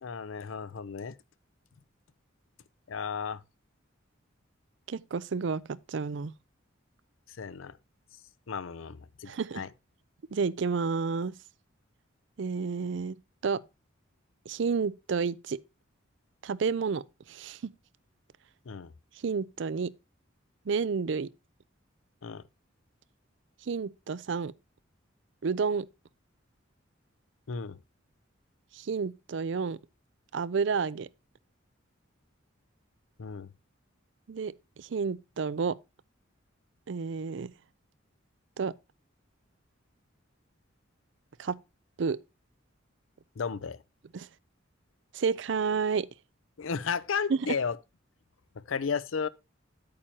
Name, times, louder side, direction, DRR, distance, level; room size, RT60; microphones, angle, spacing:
voice 1, 0.0-1.1 2.9-3.4 7.3-7.8 8.5-9.7 18.7-18.9 22.2-22.4 27.5-27.8 33.2-33.5 43.4-43.8 46.6-47.8 48.5-49.3, left 6 dB, 75° left, 0.6 m, -34 dB
voice 2, 4.9-6.4 9.3-9.6 10.3-11.3 12.4-13.2 13.4-13.6 14.5-15.6 16.4-17.7 19.2-19.9 20.7-21.3 23.7-24.5 25.4-25.9 28.7-29.8 30.3-31.1 34.3-35.8 36.9-37.5 38.6-38.7 41.4-41.6 42.0-42.2 44.1-44.3 45.1-46.1 47.3-47.5, right 5 dB, 60° right, 0.4 m, -30 dB
8.9 x 8.7 x 2.8 m
head